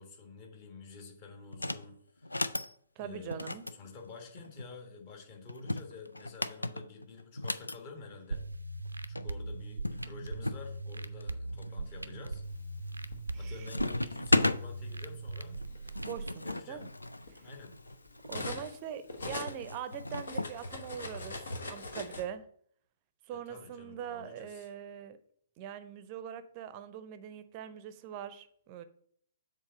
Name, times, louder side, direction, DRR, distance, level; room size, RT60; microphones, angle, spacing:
voice 1, 0.0-2.5 3.0-8.4 9.1-12.4 13.3-15.6 16.4-16.8 17.4-17.7 23.3-24.7, left 4 dB, 35° left, 2 dB, 1.5 m, -49 dB
sound 1, 1.5-1.9 2.2-2.7 3.3-4.7 5.5-7.8 8.9-9.0 9.1-9.3 9.8-10.6 11.2-11.7 12.2-12.6 12.9-13.4 13.6-14.6 15.6-18.5 19.5-20.5, left 2 dB, 80° left, 0.4 m, -34 dB
voice 2, 3.0-3.7 13.3-13.7 16.0-16.9 17.3-17.5 18.2-21.4 21.7-22.4 23.3-25.2 25.6-28.8, right 9 dB, 30° right, 12 dB, 0.6 m, -42 dB
sound 2, 8.3-16.3, right 2 dB, 80° right, 0.5 m, -40 dB
Cutlery silverware, 12.7-14.0 14.9-15.1 15.5-18.8 19.1-22.2, left 2 dB, 65° left, 1.1 m, -42 dB
7.2 x 3.9 x 5.3 m, 0.63 s
figure-of-eight pair, 125°, 0 cm